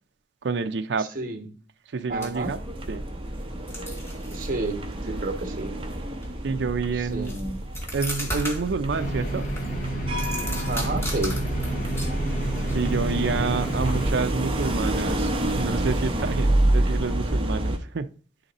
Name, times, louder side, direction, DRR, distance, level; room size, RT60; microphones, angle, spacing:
voice 1, 0.4-1.1 1.9-2.6 2.9-3.0 5.0-5.3 6.4-7.4 7.9-9.5 12.7-18.1, right 4 dB, 75° right, 0.5 m, -28 dB
voice 2, 1.0-1.6 2.1-2.5 4.3-5.7 6.9-7.6 10.6-11.4, right 2 dB, 50° right, 1.2 m, -31 dB
sound 1, 2.1-13.1, equal, 15° left, 1.5 m, -39 dB
sound 2, 2.4-17.8, right 1 dB, 30° right, 0.9 m, -28 dB
sound 3, 8.9-14.1, right 2 dB, 45° left, 1.9 m, -30 dB
10.5 x 3.9 x 4.1 m
head